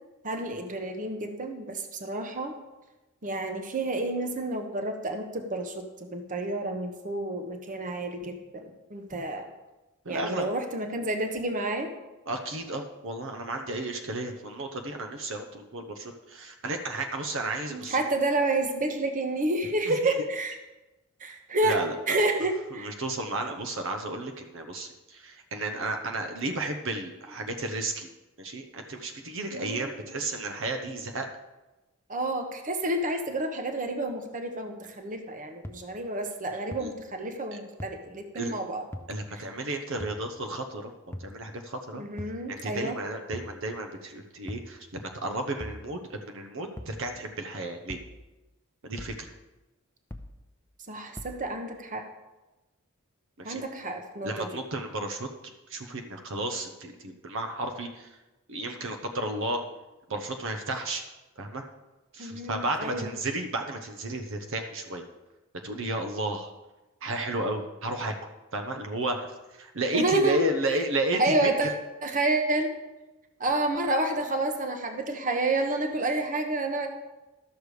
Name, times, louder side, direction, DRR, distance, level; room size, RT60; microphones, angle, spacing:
voice 1, 0.2-2.5 3.2-9.5 10.1-11.9 17.7-20.6 21.2-21.8 22.1-22.9 29.5-29.9 32.1-38.9 39.3-39.4 41.9-43.0 50.9-52.1 53.4-54.5 62.2-63.1 69.9-70.5 71.1-72.8 73.4-76.9, right 2 dB, 40° right, 5 dB, 1.0 m, -29 dB
voice 2, 10.0-10.5 12.3-18.0 19.9-20.1 21.6-22.2 22.7-28.1 28.4-31.3 36.8-36.9 38.3-38.5 39.1-40.9 41.2-42.0 42.5-48.0 48.8-49.3 53.4-53.6 54.2-55.3 55.7-58.2 58.5-59.6 60.1-61.0 61.4-61.6 62.1-65.0 65.6-66.5 67.0-71.5, right 2 dB, 65° right, 5 dB, 0.9 m, -33 dB
sound 1, 35.6-35.7 36.7-36.8 37.8-37.9 38.9-39.1 40.0-40.2 41.1-41.3 42.2-42.4 43.3-43.5 44.5-44.7 45.6-45.8 46.8-47.0 47.9-48.1 49.0-49.2 50.1-50.3 51.2-51.4, equal, 10° left, 0.7 m, -39 dB
12.5 x 6.6 x 4.9 m, 1.1 s
head